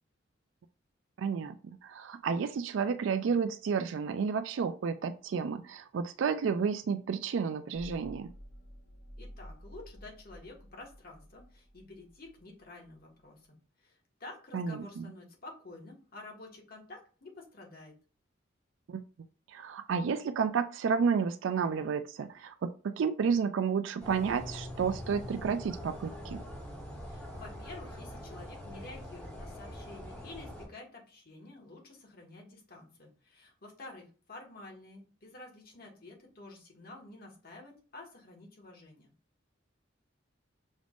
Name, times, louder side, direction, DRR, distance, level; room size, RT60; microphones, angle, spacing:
voice 1, 1.2-8.3 14.5-15.0 18.9-19.0 19.5-26.4, right 6 dB, 75° right, 10 dB, 0.3 m, -31 dB
sound 1, 7.7-13.2, equal, 85° left, 2.1 m, -51 dB
voice 2, 9.2-17.9 27.0-39.1, left 2 dB, 50° left, -1 dB, 1.6 m, -50 dB
sound 2, 24.0-30.7, equal, 10° left, 1.5 m, -43 dB
6.3 x 3.4 x 2.5 m, 0.37 s
head